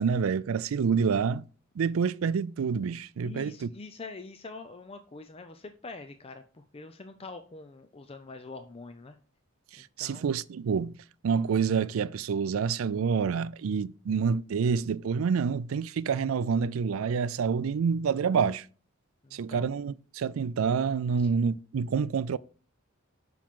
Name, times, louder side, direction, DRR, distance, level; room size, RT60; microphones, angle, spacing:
voice 1, 0.0-1.4 1.8-3.7 9.7-11.0 11.2-18.7 19.3-22.4, right 6 dB, 70° right, 0.4 m, -27 dB
voice 2, 3.2-9.2 10.0-10.3 19.2-19.7 21.1-21.3, left 3 dB, 30° left, 0.5 m, -45 dB
7.4 x 5.9 x 3.7 m
head